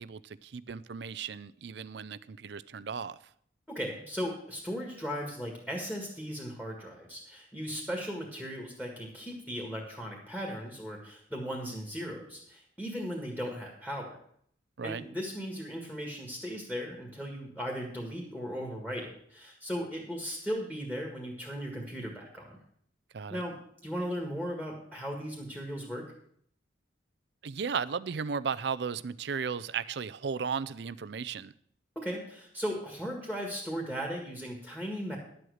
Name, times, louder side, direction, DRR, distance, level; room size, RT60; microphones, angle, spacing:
voice 1, 0.0-3.2 14.8-15.0 23.1-23.4 27.4-31.5, right 6 dB, 65° right, 16 dB, 0.5 m, -35 dB
voice 2, 3.7-14.2 14.8-22.6 23.3-26.1 32.0-35.2, equal, 5° left, 0 dB, 1.8 m, -37 dB
11.0 x 7.8 x 6.4 m, 0.66 s
head